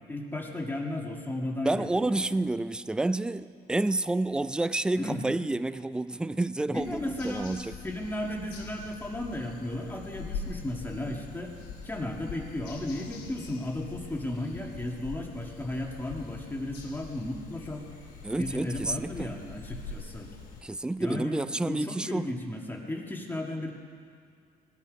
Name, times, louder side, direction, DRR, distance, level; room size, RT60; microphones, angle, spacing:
voice 1, 0.1-2.4 5.0-5.2 6.7-7.5 7.8-11.5 11.8-17.8 18.4-20.3 21.0-23.7, left 1 dB, 10° left, 0 dB, 1.9 m, -35 dB
voice 2, 1.6-7.7 18.2-19.3 20.6-22.3, right 2 dB, 5° right, 15 dB, 0.3 m, -29 dB
sound 1, 6.7-20.6, left 5 dB, 85° left, 2.6 m, -43 dB
19.0 x 13.0 x 5.2 m, 2.2 s
cardioid pair, 110°, 17 cm